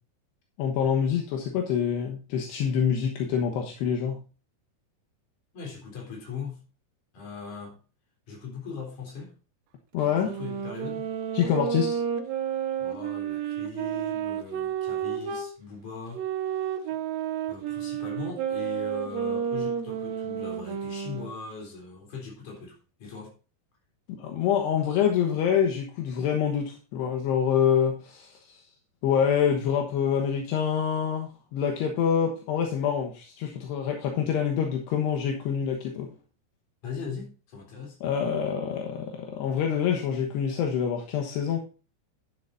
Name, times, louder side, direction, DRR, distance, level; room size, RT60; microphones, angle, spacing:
voice 1, 0.6-4.2 9.9-10.3 11.3-12.0 24.1-28.6 29.0-36.1 38.0-41.6, left 8 dB, 80° left, 3.3 m, -26 dB
voice 2, 5.5-6.6 7.1-7.8 8.3-9.3 10.2-11.1 12.8-16.9 17.5-23.3 36.8-38.0, left 5 dB, 50° left, 4.8 m, -40 dB
sound 1, 10.0-15.5 16.1-21.3, right 8 dB, 70° right, 2.5 m, -31 dB
11.0 x 10.5 x 2.6 m
omnidirectional pair, 4.8 m